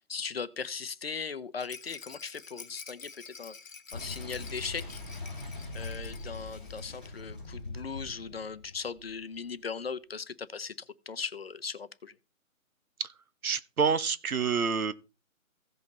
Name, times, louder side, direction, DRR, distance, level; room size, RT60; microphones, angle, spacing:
voice 1, 0.1-3.5 3.9-5.0 5.7-10.7 11.1-12.2, left 5 dB, 45° left, 0.7 m, -38 dB
Rattle, 1.6-7.3 7.5-7.6 7.9-8.0, left 5 dB, 65° left, 1.3 m, -49 dB
Boom, 3.9-9.5, left 2 dB, 5° right, 0.7 m, -42 dB
voice 2, 13.4-14.9, right 6 dB, 85° right, 1.2 m, -28 dB
15.5 x 5.4 x 3.9 m
hypercardioid pair, 165°, 42 cm